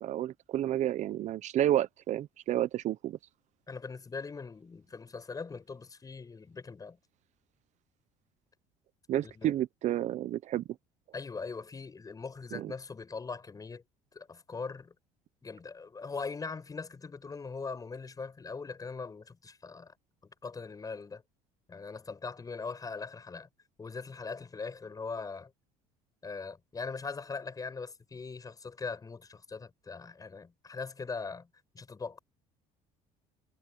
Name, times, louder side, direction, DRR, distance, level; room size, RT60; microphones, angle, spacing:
voice 1, 0.0-3.2 9.1-10.6 12.5-12.7, right 12 dB, 55° right, 0.8 m, -30 dB
voice 2, 3.7-7.0 9.2-9.5 11.1-13.8 14.1-14.9 15.4-19.9 20.4-21.2 21.7-23.5 23.8-25.5 26.2-31.5 31.7-32.2, left 4 dB, 25° left, 7.9 m, -41 dB
supercardioid pair, 95°, 14 cm